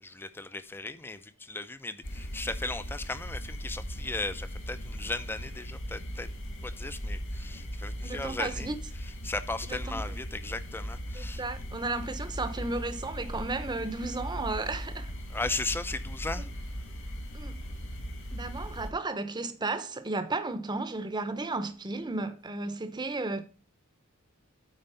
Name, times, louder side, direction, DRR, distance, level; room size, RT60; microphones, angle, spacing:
voice 1, 0.0-6.3 6.6-8.7 9.0-11.4 15.3-16.5, left 2 dB, 10° left, 0.5 m, -36 dB
sound 1, 2.0-18.9, equal, 65° left, 2.6 m, -38 dB
voice 2, 8.0-8.7 9.7-10.2 11.1-15.1 16.4-16.5 17.3-17.6 18.3-23.4, right 3 dB, 20° right, 0.8 m, -34 dB
9.1 x 4.4 x 5.6 m
head